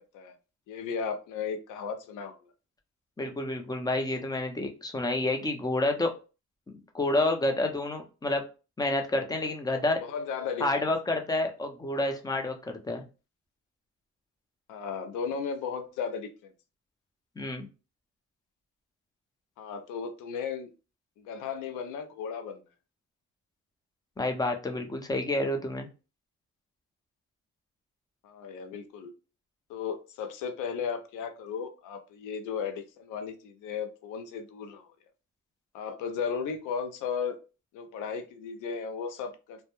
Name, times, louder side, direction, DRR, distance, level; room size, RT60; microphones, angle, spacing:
voice 1, 0.7-2.5 10.0-10.9 11.9-12.1 14.7-16.5 19.6-20.7 21.2-22.6 28.2-29.1 29.7-34.9 35.7-37.4 37.7-39.6, left 6 dB, 85° left, 7 dB, 0.5 m, -35 dB
voice 2, 3.2-6.1 6.9-8.4 8.8-10.0 10.6-13.0 17.4-17.7 24.2-25.9, left 2 dB, 15° left, 4 dB, 0.6 m, -29 dB
2.1 x 2.1 x 2.9 m, 0.32 s
cardioid pair, 90°, 30 cm